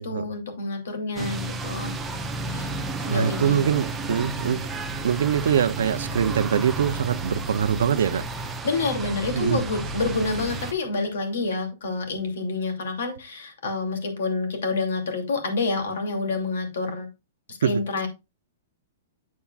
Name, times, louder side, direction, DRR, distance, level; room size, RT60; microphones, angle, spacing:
voice 1, 0.0-1.9 2.5-2.7 3.0-3.6 8.6-17.1 17.5-18.1, left 3 dB, 80° left, 2.7 m, -28 dB
sound 1, 1.2-10.7, right 2 dB, 10° right, 0.6 m, -32 dB
voice 2, 3.1-4.7 5.0-8.2 9.3-9.6 17.6-17.8, right 8 dB, 80° right, 0.6 m, -23 dB
8.5 x 7.0 x 2.4 m
hypercardioid pair, 175°, 0 cm